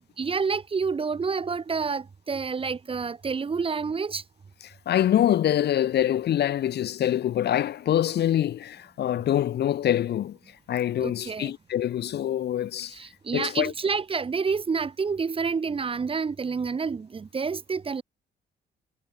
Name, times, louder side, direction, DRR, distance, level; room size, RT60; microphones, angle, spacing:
voice 1, 0.0-4.2 11.0-11.5 12.9-18.0, right 5 dB, 25° right, 0.7 m, -28 dB
voice 2, 4.6-10.4 10.7-13.0 13.3-13.7, left 11 dB, 55° left, 0.6 m, -25 dB
cardioid pair, 90°, 20 cm